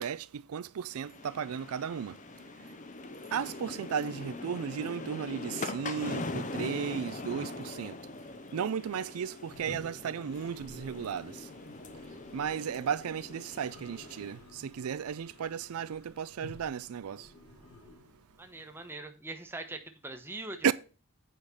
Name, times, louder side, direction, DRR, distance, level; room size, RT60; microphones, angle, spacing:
voice 1, 0.0-2.1 3.3-7.9 8.5-11.3 12.3-17.3 20.6-20.7, right 7 dB, 85° right, 0.4 m, -34 dB
sound 1, 0.9-14.4, left 2 dB, 35° left, 0.7 m, -42 dB
Toilet flush, 9.5-18.6, left 2 dB, 85° left, 5.4 m, -53 dB
voice 2, 18.4-20.7, right 2 dB, 10° right, 0.9 m, -42 dB
8.4 x 5.1 x 5.6 m
head